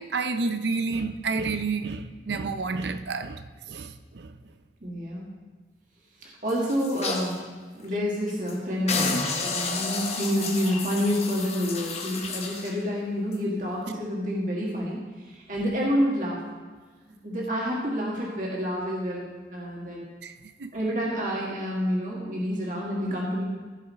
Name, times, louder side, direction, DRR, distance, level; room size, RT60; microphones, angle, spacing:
voice 1, 0.0-4.3 20.2-20.3 20.6-20.7, right 4 dB, 75° right, 0.6 m, -30 dB
voice 2, 4.8-5.3 6.4-7.4 7.7-15.0 15.3-16.4 17.2-20.1 20.7-23.4, equal, 45° right, 1.8 m, -28 dB
sound 1, 6.5-7.4 7.8-7.9 8.3-8.5 8.9-12.8 13.3-13.4, left 4 dB, 35° left, 1.0 m, -31 dB
15.0 x 5.6 x 4.2 m
head